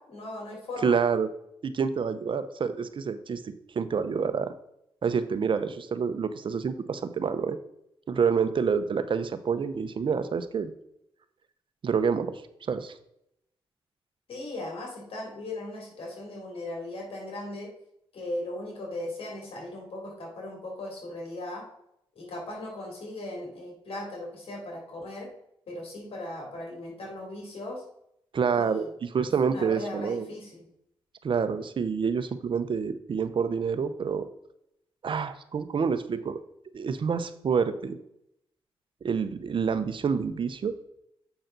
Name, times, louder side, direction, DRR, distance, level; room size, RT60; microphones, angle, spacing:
voice 1, 0.1-0.9 14.3-17.7 18.1-21.7 22.1-25.3 25.7-27.8 28.5-28.9 29.4-30.7, left 1 dB, 70° left, 0 dB, 3.3 m, -38 dB
voice 2, 0.8-1.3 1.6-4.5 5.0-7.6 8.1-10.7 11.8-12.4 12.7-12.9 28.3-30.3 31.2-34.3 35.0-36.4 36.7-38.0 39.0-40.7, right 6 dB, 55° right, 11 dB, 0.7 m, -27 dB
7.9 x 5.8 x 3.9 m, 0.78 s
cardioid pair, 65°, 10 cm